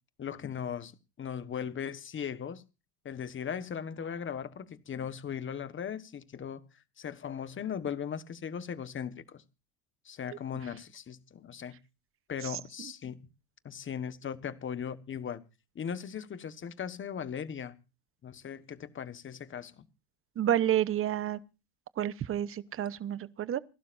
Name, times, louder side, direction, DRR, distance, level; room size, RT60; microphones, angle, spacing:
voice 1, 0.2-0.9 1.2-2.6 3.0-6.6 7.0-9.4 10.0-11.8 12.3-13.2 13.6-15.4 15.7-17.8 18.2-19.9, left 8 dB, 25° left, 1.4 m, -38 dB
voice 2, 20.4-21.4 22.0-23.6, right 11 dB, 30° right, 0.9 m, -29 dB
29.0 x 12.0 x 2.6 m
cardioid pair, 135°, 46 cm